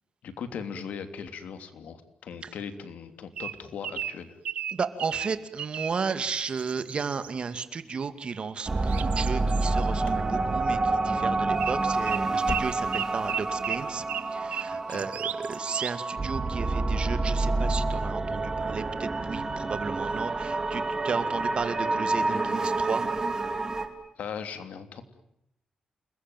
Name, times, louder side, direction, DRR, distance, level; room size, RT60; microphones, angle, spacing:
voice 1, 0.2-4.4 14.9-15.0 24.2-25.0, left 6 dB, 80° left, 9 dB, 3.0 m, -38 dB
sound 1, 3.4-6.0 6.3-7.3 8.9-9.7 11.6-11.8 12.1-16.0, right 9 dB, 85° right, 1.1 m, -34 dB
voice 2, 4.7-14.0 14.3-23.1, right 5 dB, 45° right, 11 dB, 2.3 m, -34 dB
sound 2, 8.7-23.9, right 3 dB, 25° right, 3.2 m, -28 dB
sound 3, 9.6-10.3 10.6-11.1 11.4-11.5 11.9-13.2 13.5-13.6 14.1-14.2, left 4 dB, 50° left, 2.2 m, -39 dB
29.0 x 21.5 x 9.3 m, 0.81 s
cardioid pair, 115°, 2 cm